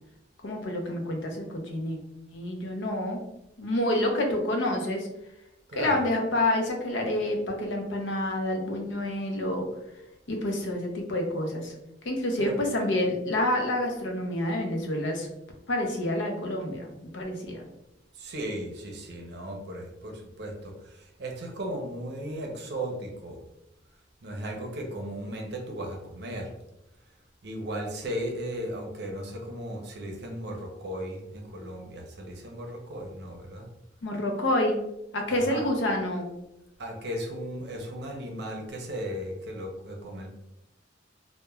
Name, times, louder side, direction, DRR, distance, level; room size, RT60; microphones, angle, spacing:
voice 1, 0.4-2.0 2.3-3.2 3.6-5.1 5.7-9.6 10.3-11.7 12.0-15.3 15.7-17.6 34.0-34.8 35.1-36.3, left 1 dB, 75° left, 2 dB, 0.6 m, -28 dB
voice 2, 5.7-6.0 12.4-12.5 18.2-23.4 24.2-26.5 27.4-33.7 35.3-35.6 36.8-40.3, right 1 dB, 60° right, 2 dB, 0.6 m, -36 dB
3.0 x 2.1 x 2.3 m, 0.87 s
head